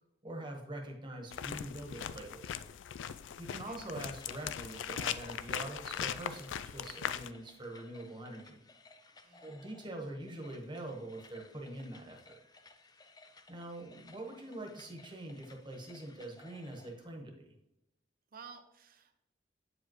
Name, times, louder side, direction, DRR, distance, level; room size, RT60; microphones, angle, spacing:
voice 1, 0.2-2.6 3.4-8.6 9.4-12.4 13.5-17.5, right 1 dB, 25° right, 1 dB, 1.2 m, -44 dB
sound 1, 1.3-7.3, left 9 dB, 85° left, 0.3 m, -40 dB
voice 2, 3.4-3.8 9.2-9.7 18.3-19.1, right 5 dB, 55° right, 7 dB, 0.8 m, -54 dB
sound 2, 4.2-17.1, left 3 dB, 20° left, 0.5 m, -60 dB
8.3 x 4.9 x 3.1 m, 0.86 s
head